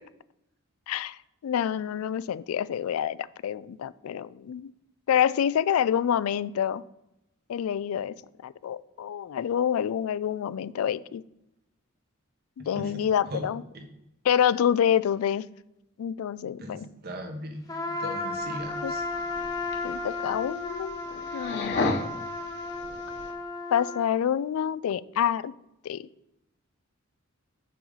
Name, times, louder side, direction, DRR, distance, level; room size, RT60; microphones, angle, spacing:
voice 1, 0.9-4.7 5.1-6.8 7.5-8.2 8.4-11.2 12.6-13.6 14.2-15.5 16.0-16.9 18.8-18.9 19.8-21.0 21.3-21.9 23.7-25.5 25.8-26.1, left 9 dB, 80° left, 17 dB, 0.3 m, -27 dB
voice 2, 16.6-17.6 18.0-19.0, equal, 50° right, 5 dB, 1.1 m, -37 dB
Trumpet, 17.7-24.1, left 3 dB, 20° left, 1.0 m, -34 dB
sound 1, 18.4-23.3, left 3 dB, 55° left, 1.1 m, -35 dB
6.8 x 6.1 x 4.0 m, 0.86 s
head